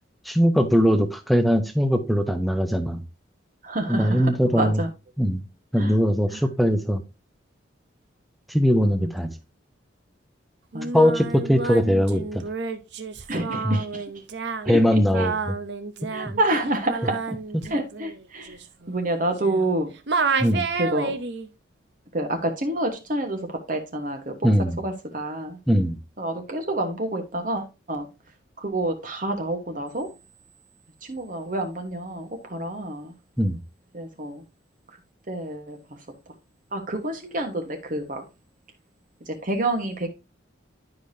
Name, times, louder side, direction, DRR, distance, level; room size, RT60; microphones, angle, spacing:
voice 1, 0.2-3.0 3.9-4.8 5.2-5.4 5.7-7.0 8.5-9.3 10.9-12.4 13.6-13.8 14.7-15.6 16.2-16.3 17.5-17.6 20.4-20.7 24.4-24.8 25.7-26.0 33.4-33.6, equal, ahead, 0.8 m, -21 dB
voice 2, 3.6-4.9 5.8-6.0 6.3-6.4 9.0-9.3 10.7-11.0 13.3-14.1 14.7-15.3 16.1-17.3 17.7-18.6 18.9-19.9 20.8-21.1 22.1-24.5 24.8-25.6 26.2-28.1 28.6-30.1 31.0-33.1 33.9-34.4 34.9-35.0 35.3-35.8 36.7-38.2 39.3-40.1, right 1 dB, 40° right, 1.2 m, -28 dB
Singing, 10.7-19.8 20.1-21.5, right 4 dB, 60° right, 0.8 m, -30 dB
11.0 x 5.1 x 2.7 m
head